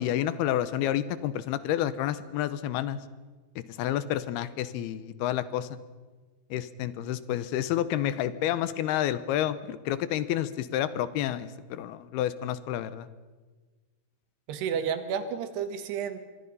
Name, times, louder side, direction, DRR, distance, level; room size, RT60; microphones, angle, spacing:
voice 1, 0.0-3.0 3.6-5.8 6.5-13.1, left 12 dB, 80° left, 15 dB, 2.7 m, -29 dB
voice 2, 14.5-16.2, right 7 dB, 85° right, 9 dB, 3.7 m, -31 dB
26.0 x 22.0 x 5.5 m, 1.3 s
omnidirectional pair, 4.7 m